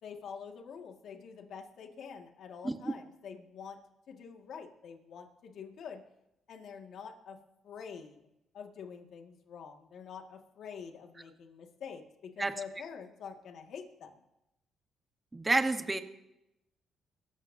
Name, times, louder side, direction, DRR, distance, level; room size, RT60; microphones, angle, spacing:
voice 1, 0.0-3.8 4.1-6.0 6.5-7.4 7.6-8.2 8.5-14.1, left 6 dB, 70° left, 3 dB, 1.9 m, -46 dB
voice 2, 15.3-16.0, right 2 dB, 20° right, 7 dB, 1.2 m, -28 dB
24.0 x 13.5 x 2.7 m, 0.88 s
cardioid pair, 90°, 0 cm